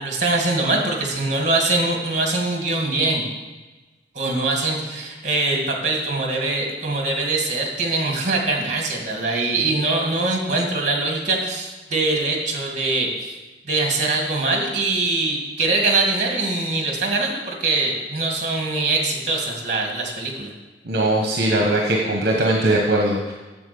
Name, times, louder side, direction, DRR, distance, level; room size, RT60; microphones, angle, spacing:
voice 1, 0.0-3.2 4.2-13.4 13.7-20.5, right 2 dB, 40° right, 1 dB, 2.1 m, -23 dB
voice 2, 20.8-23.3, right 1 dB, 60° right, 0 dB, 1.2 m, -20 dB
8.6 x 7.5 x 7.0 m, 1.2 s
head